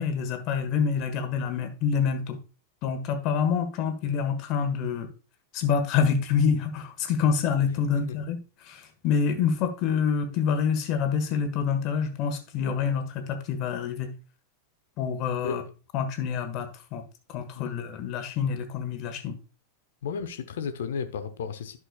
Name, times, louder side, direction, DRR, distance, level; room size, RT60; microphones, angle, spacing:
voice 1, 0.0-2.4 2.8-5.1 5.5-14.1 15.0-15.6 15.9-17.0 17.3-19.4, left 6 dB, 40° left, 1.4 m, -27 dB
voice 2, 17.5-17.8 20.0-21.8, left 6 dB, 60° left, 0.9 m, -33 dB
11.5 x 6.2 x 2.3 m
figure-of-eight pair, 90°, 0 cm